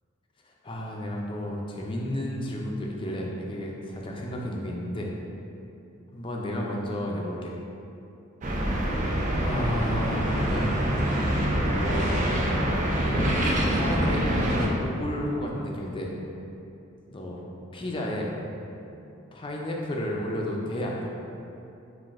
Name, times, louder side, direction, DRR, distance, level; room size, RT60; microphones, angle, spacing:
voice 1, 0.4-5.1 6.1-7.5 9.4-10.8 11.7-12.3 12.7-16.1 17.1-17.4 17.7-18.3 19.3-21.1, left 1 dB, 25° left, -1 dB, 0.4 m, -32 dB
sound 1, 8.4-14.7, right 1 dB, 40° right, 0.4 m, -25 dB
5.7 x 2.5 x 2.5 m, 2.8 s
head